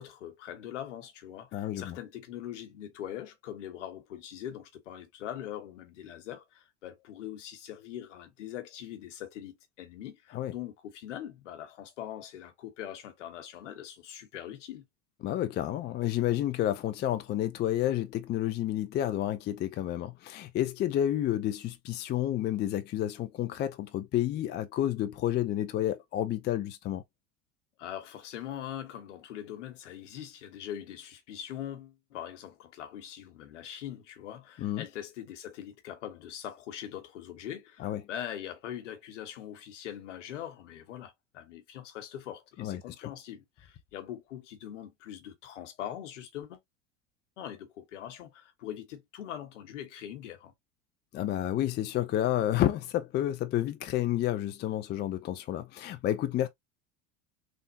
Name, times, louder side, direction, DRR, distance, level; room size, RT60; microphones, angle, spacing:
voice 1, 0.0-14.8 27.8-46.6 47.4-50.5, left 11 dB, 80° left, 1.0 m, -42 dB
voice 2, 1.5-2.0 10.3-10.5 15.2-27.0 34.6-34.9 37.8-38.0 42.6-43.1 51.1-56.5, left 12 dB, 30° left, 0.4 m, -30 dB
3.4 x 2.1 x 2.6 m
hypercardioid pair, 80°, 36 cm